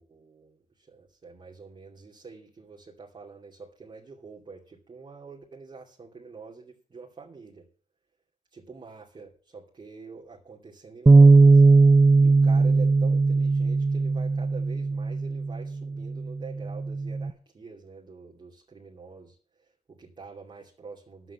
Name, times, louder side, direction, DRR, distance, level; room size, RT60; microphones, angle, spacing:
voice 1, 0.0-7.7 8.5-11.6 12.2-21.3, right 4 dB, 40° right, -3 dB, 2.6 m, -46 dB
Bass guitar, 11.1-17.3, right 3 dB, 15° right, 0.6 m, -19 dB
11.0 x 7.9 x 8.5 m, 0.42 s
cardioid pair, 105°, 13 cm